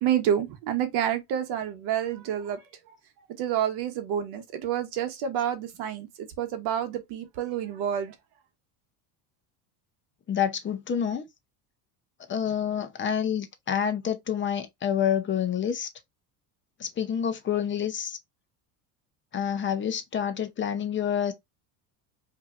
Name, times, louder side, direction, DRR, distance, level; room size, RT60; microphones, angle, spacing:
voice 1, 0.0-2.6 3.4-8.1, right 9 dB, 60° right, 1.0 m, -28 dB
voice 2, 10.3-11.2 12.3-15.9 16.8-18.2 19.3-21.3, left 8 dB, 25° left, 0.7 m, -28 dB
4.5 x 2.8 x 2.5 m
supercardioid pair, 115°, 45 cm